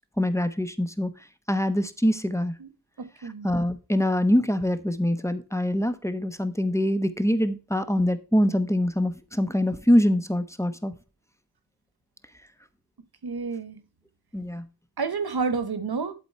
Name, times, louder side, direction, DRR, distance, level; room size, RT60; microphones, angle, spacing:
voice 1, 0.2-1.1 1.5-2.5 3.4-10.9 14.3-14.6, left 1 dB, 10° left, 1.0 m, -24 dB
voice 2, 3.0-3.5 13.2-13.8 15.0-16.1, right 4 dB, 80° right, 1.1 m, -30 dB
11.5 x 4.0 x 4.5 m
cardioid pair, 45°, 37 cm